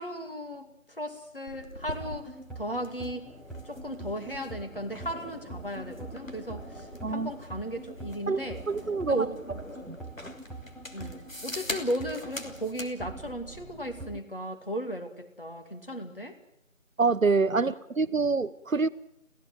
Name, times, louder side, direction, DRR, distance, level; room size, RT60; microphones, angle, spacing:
voice 1, 0.0-3.3 3.6-8.6 9.1-9.3 10.9-16.4, equal, 40° left, 2.4 m, -36 dB
sound 1, 1.5-12.9, left 1 dB, 75° left, 3.1 m, -43 dB
sound 2, 1.9-14.2, right 2 dB, ahead, 1.0 m, -44 dB
voice 2, 8.3-9.3 9.8-10.0 17.0-18.9, right 4 dB, 75° right, 1.0 m, -26 dB
27.5 x 16.0 x 7.8 m
figure-of-eight pair, 175°, 40 cm